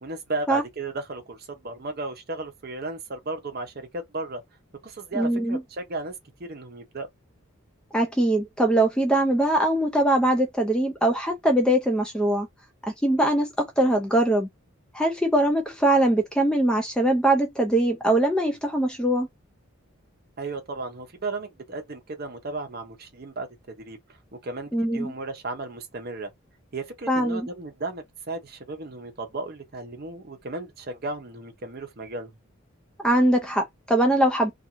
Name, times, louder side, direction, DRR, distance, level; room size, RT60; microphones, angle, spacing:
voice 1, 0.0-4.4 4.8-6.1 6.4-7.1 20.4-24.0 24.4-26.3 26.7-32.3, right 3 dB, 45° right, 0.7 m, -34 dB
voice 2, 5.1-5.6 7.9-12.5 13.0-14.5 14.9-19.3 24.7-25.1 27.1-27.5 33.0-34.5, right 1 dB, 5° left, 0.3 m, -22 dB
2.5 x 2.4 x 2.9 m
head